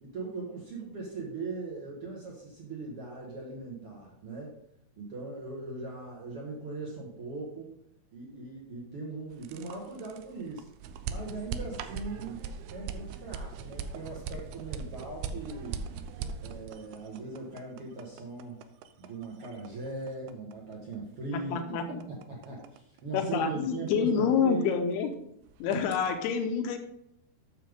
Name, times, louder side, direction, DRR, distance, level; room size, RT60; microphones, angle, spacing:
voice 1, 0.0-4.6 5.0-7.7 8.1-10.7 11.0-12.4 12.7-15.8 16.4-18.6 19.0-24.7 25.7-25.8, right 3 dB, 55° right, -3 dB, 1.6 m, -40 dB
sound 1, 9.3-25.1 25.4-26.1, right 6 dB, 80° right, 2.4 m, -40 dB
voice 2, 21.3-22.0 23.1-25.1 25.6-26.8, left 6 dB, 75° left, 6 dB, 2.8 m, -28 dB
9.8 x 6.7 x 3.7 m, 0.77 s
omnidirectional pair, 4.8 m